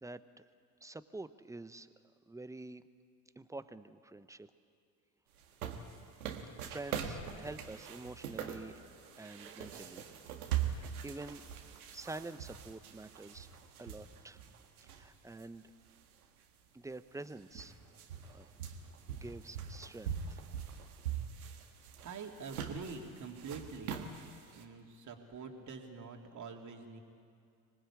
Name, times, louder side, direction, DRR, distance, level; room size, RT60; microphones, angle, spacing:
voice 1, 0.8-1.9 2.3-2.8 3.4-4.5 6.7-8.8 9.2-10.0 10.6-11.4 11.9-14.4 14.8-15.7 16.7-17.7 18.2-18.5 19.1-20.5, right 2 dB, 5° right, 13 dB, 1.0 m, -47 dB
sound 1, 5.4-15.4 15.9-16.0 16.9-17.0 17.2-24.6, right 8 dB, 80° right, 1.7 m, -42 dB
voice 2, 22.0-24.0 24.5-27.0, right 5 dB, 40° right, 2 dB, 3.2 m, -46 dB
25.5 x 19.5 x 8.6 m, 2.3 s
figure-of-eight pair, 60°, 43 cm